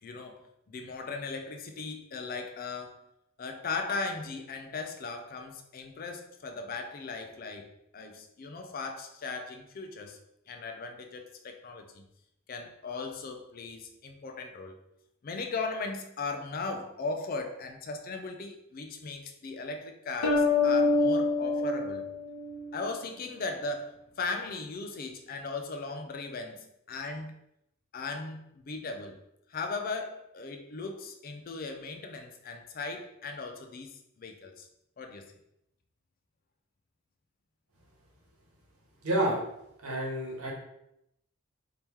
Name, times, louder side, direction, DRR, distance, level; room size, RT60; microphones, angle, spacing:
voice 1, 0.0-3.0 3.4-10.2 10.5-12.0 12.5-14.8 15.2-22.0 22.7-27.3 27.9-29.2 29.5-34.7 35.0-35.3, left 3 dB, 40° left, 5 dB, 0.4 m, -38 dB
sound 1, 20.2-22.9, left 3 dB, 90° left, 0.6 m, -26 dB
voice 2, 39.0-39.4 39.8-40.5, right 1 dB, 90° right, -2 dB, 1.1 m, -29 dB
3.0 x 2.8 x 3.5 m, 0.80 s
head